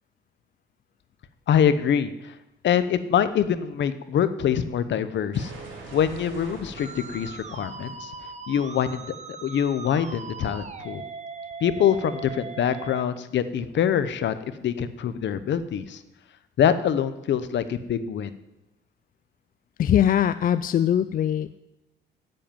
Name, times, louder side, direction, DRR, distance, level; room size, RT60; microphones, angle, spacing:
voice 1, 1.5-2.3 2.6-5.5 5.9-8.1 8.5-11.0 11.6-14.3 14.6-16.0 16.6-18.3, left 8 dB, 65° left, 13 dB, 0.9 m, -24 dB
sound 1, 5.3-10.1, right 3 dB, 75° right, 3.6 m, -45 dB
Musical instrument, 6.8-13.0, right 4 dB, 35° right, 1.1 m, -39 dB
voice 2, 19.8-21.6, left 10 dB, 45° left, 14 dB, 0.4 m, -21 dB
8.6 x 7.8 x 9.1 m, 0.94 s
cardioid pair, 90°, 20 cm